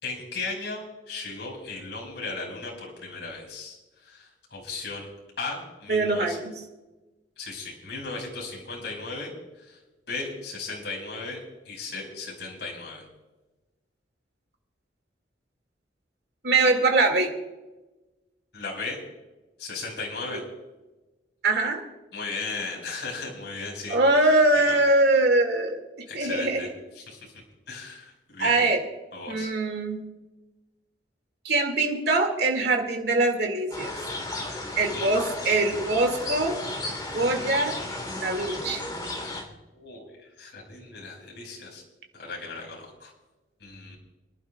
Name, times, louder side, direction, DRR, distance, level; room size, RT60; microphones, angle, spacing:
voice 1, 0.0-3.8 4.0-5.1 5.4-6.4 7.4-9.3 9.6-9.8 10.1-13.1 18.5-19.0 19.6-20.4 22.1-24.0 24.5-24.8 26.1-26.7 26.9-27.3 27.7-28.6 29.1-29.5 34.8-35.1 39.7-41.8 42.1-43.1 43.6-44.0, left 3 dB, 70° left, -1 dB, 5.3 m, -36 dB
voice 2, 5.9-6.5 16.4-17.3 20.3-20.4 21.4-21.8 23.9-25.8 26.1-26.7 28.4-28.8 29.3-30.0 31.4-33.9 34.8-36.6 37.1-37.8 38.2-38.8, right 2 dB, 60° right, 3 dB, 2.3 m, -23 dB
sound 1, 33.7-39.4, left 2 dB, 20° left, 3.3 m, -34 dB
28.0 x 11.5 x 2.4 m, 1.1 s
head